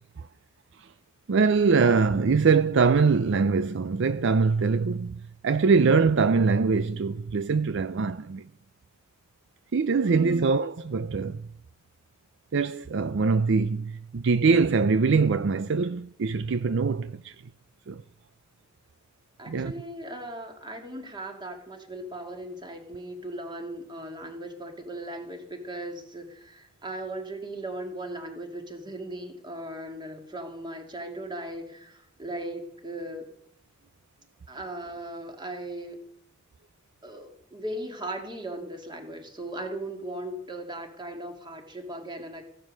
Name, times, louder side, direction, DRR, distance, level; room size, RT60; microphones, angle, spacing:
voice 1, 1.3-8.4 9.7-11.4 12.5-17.3 17.9-18.0 19.5-19.7, right 4 dB, 60° right, 0.5 m, -23 dB
voice 2, 10.0-10.5 19.4-33.3 34.5-36.0 37.0-42.4, right 1 dB, 20° right, 2.2 m, -38 dB
15.5 x 12.0 x 6.5 m
head